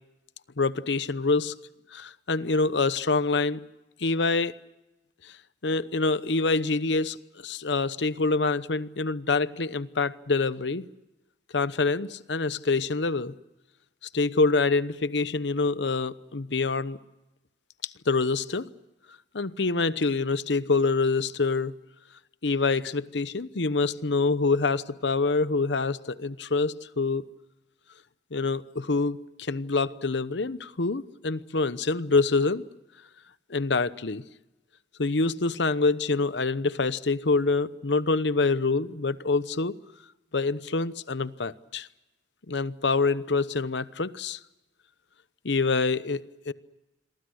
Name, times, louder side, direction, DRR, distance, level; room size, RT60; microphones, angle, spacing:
voice 1, 0.6-1.5 1.9-3.6 4.0-4.5 5.2-5.3 5.6-7.2 7.4-10.8 11.5-13.3 14.1-17.0 17.8-18.7 19.3-21.7 22.4-27.3 28.3-32.6 33.5-34.2 35.0-39.7 40.3-41.9 42.5-44.4 45.4-46.5, left 3 dB, 70° left, 0.9 m, -26 dB
28.5 x 23.0 x 6.4 m
head